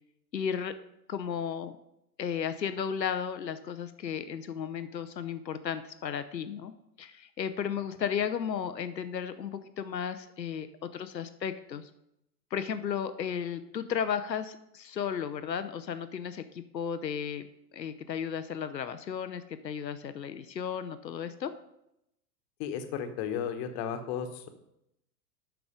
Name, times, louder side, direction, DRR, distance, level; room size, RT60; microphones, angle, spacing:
voice 1, 0.3-0.7 1.1-1.8 2.2-6.7 7.0-11.9 12.5-17.4 17.7-21.5, left 7 dB, 85° left, 11 dB, 0.7 m, -34 dB
voice 2, 22.6-24.5, left 8 dB, 35° left, 8 dB, 1.2 m, -34 dB
9.0 x 6.0 x 5.1 m, 0.82 s
figure-of-eight pair, 100°, 49 cm